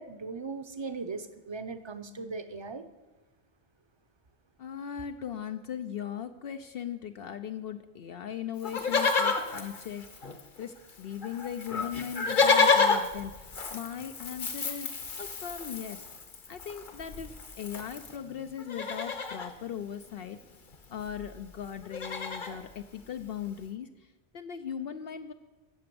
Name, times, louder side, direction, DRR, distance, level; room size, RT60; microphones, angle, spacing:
voice 1, 0.0-2.8, right 4 dB, 30° right, 9 dB, 0.7 m, -38 dB
voice 2, 4.6-10.3 10.6-14.9 15.2-16.0 16.5-20.4 20.9-23.9 24.3-25.3, left 9 dB, 65° left, 8 dB, 0.8 m, -38 dB
Livestock farm animals working animals, 8.6-10.6 10.9-11.0 11.2-18.2 18.6-19.5 20.7-20.8 21.0-21.3 21.6-22.6 23.2-23.3, left 4 dB, 50° left, 1.2 m, -30 dB
16.0 x 6.9 x 6.9 m, 1.2 s
omnidirectional pair, 1.1 m